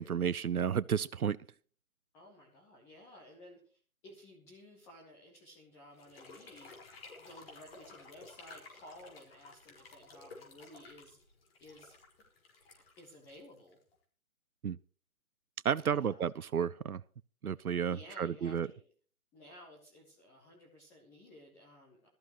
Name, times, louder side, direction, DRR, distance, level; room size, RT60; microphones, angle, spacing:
voice 1, 0.0-1.4 14.6-14.8 15.6-17.0 17.4-18.7, right 8 dB, 85° right, 0.6 m, -32 dB
voice 2, 2.1-6.7 7.2-11.2 11.6-12.0 13.0-13.8 15.8-16.2 17.9-18.9 19.3-22.1, left 1 dB, 5° left, 0.8 m, -55 dB
sound 1, 5.9-13.9, left 3 dB, 45° left, 4.9 m, -54 dB
19.0 x 13.5 x 3.1 m
figure-of-eight pair, 145°, 43 cm